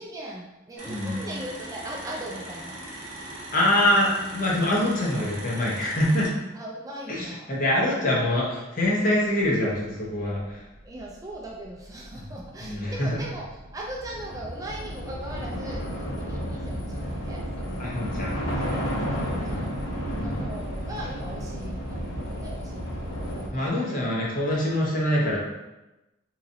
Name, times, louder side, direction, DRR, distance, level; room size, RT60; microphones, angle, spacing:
voice 1, 0.0-2.8 6.5-7.6 7.9-8.5 10.8-18.5 19.1-19.7 20.2-24.3, right 1 dB, 20° right, -2 dB, 0.3 m, -39 dB
sound 1, 0.8-6.3, right 1 dB, 40° right, 0.8 m, -40 dB
voice 2, 0.9-1.2 3.5-6.3 7.1-10.6 12.1-12.2 12.6-13.2 17.8-18.3 19.5-19.7 20.1-20.4 23.5-25.4, left 1 dB, 45° left, -4 dB, 0.9 m, -25 dB
Train / Subway metro underground, 10.1-10.2 10.5-23.5, equal, 90° left, 0.9 m, -32 dB
3.7 x 2.9 x 2.7 m, 1.0 s
head